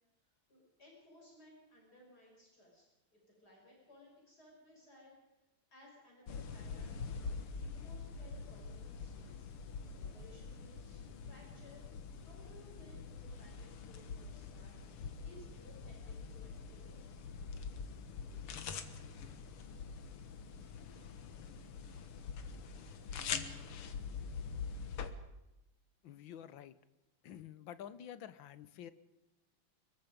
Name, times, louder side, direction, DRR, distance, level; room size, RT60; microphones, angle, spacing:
voice 1, 0.5-2.8 3.1-5.2 5.7-7.3 7.6-9.5 9.9-11.8 12.2-17.0, left 1 dB, 45° left, -3 dB, 6.9 m, -60 dB
sound 1, 6.3-25.1, left 5 dB, 90° left, 2.3 m, -45 dB
voice 2, 26.0-26.7 27.2-28.9, left 10 dB, 65° left, 14 dB, 1.7 m, -49 dB
24.5 x 22.5 x 5.2 m, 0.99 s
omnidirectional pair, 2.4 m